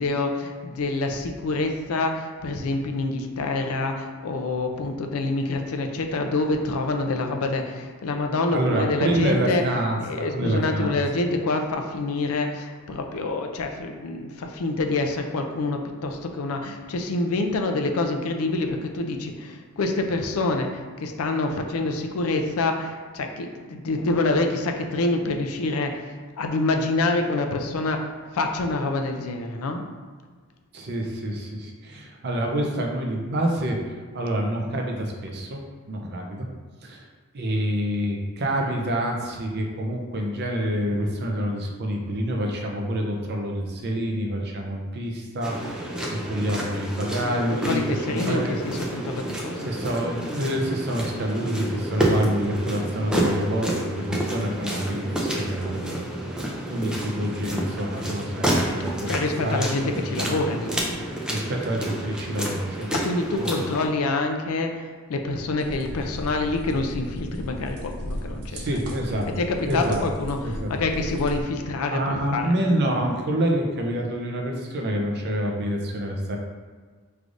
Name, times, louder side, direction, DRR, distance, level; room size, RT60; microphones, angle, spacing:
voice 1, 0.0-9.6 10.0-28.1 28.3-29.8 47.5-49.7 59.1-61.0 62.9-68.8 69.4-72.6, left 2 dB, 70° left, 4 dB, 0.4 m, -26 dB
voice 2, 8.5-11.0 30.7-33.8 34.1-35.6 35.9-36.5 36.8-37.1 37.3-47.8 48.1-48.6 49.6-60.4 61.3-62.9 63.4-63.5 68.5-69.3 69.7-70.0 70.4-70.7 71.9-76.4, right 1 dB, 50° right, 1 dB, 0.6 m, -27 dB
sound 1, 45.4-63.9, right 1 dB, 5° right, 0.4 m, -29 dB
sound 2, 65.6-71.4, equal, 80° right, 0.8 m, -35 dB
4.9 x 3.2 x 2.5 m, 1.5 s
head